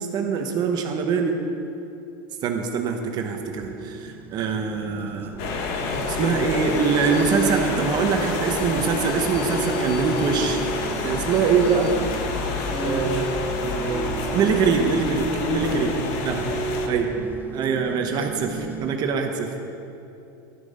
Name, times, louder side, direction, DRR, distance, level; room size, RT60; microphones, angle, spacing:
voice 1, 0.0-1.4 2.4-5.4 6.1-11.9 12.8-13.3 13.6-15.9 16.2-16.4 16.9-19.5, right 5 dB, 40° right, 4 dB, 1.0 m, -24 dB
sound 1, 3.3-19.0, right 5 dB, 15° right, 0.4 m, -33 dB
sound 2, 5.4-16.9, left 4 dB, 60° left, 1.3 m, -29 dB
voice 2, 5.8-6.5 12.7-13.2 15.4-16.7, left 1 dB, 40° left, -2 dB, 2.6 m, -31 dB
12.0 x 8.3 x 5.3 m, 2.7 s
supercardioid pair, 135°, 11 cm